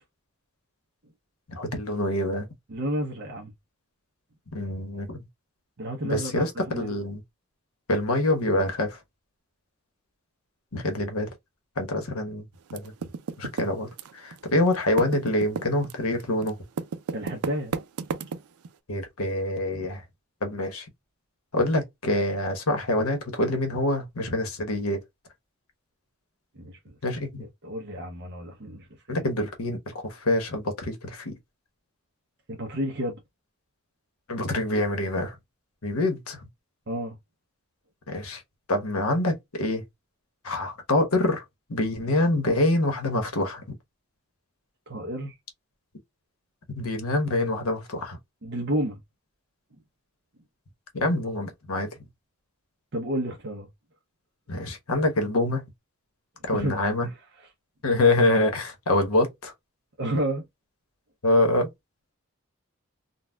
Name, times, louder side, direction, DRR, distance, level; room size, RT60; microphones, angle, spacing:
voice 1, 1.5-2.5 4.5-5.2 6.0-7.2 7.9-9.0 10.7-11.3 11.8-12.4 12.7-12.9 13.4-13.9 14.1-16.6 18.9-20.0 20.4-20.8 21.5-25.0 27.0-27.4 29.1-31.3 34.3-35.3 35.8-36.4 38.1-38.4 38.7-39.8 40.4-41.4 41.7-43.6 46.8-48.2 50.9-51.9 54.5-55.6 56.5-57.1 57.8-59.5 61.2-61.7, left 1 dB, 80° left, 1.1 m, -25 dB
voice 2, 2.7-3.5 5.8-7.0 17.1-17.7 19.7-19.9 26.6-26.9 27.4-29.2 32.5-33.2 36.9-37.2 44.9-45.4 48.4-49.0 52.9-53.7 56.5-57.5 60.0-60.4, right 1 dB, 50° right, 0.8 m, -31 dB
Typing, 12.7-14.4 14.7-18.7, right 5 dB, 85° right, 0.5 m, -32 dB
3.9 x 2.2 x 2.2 m
head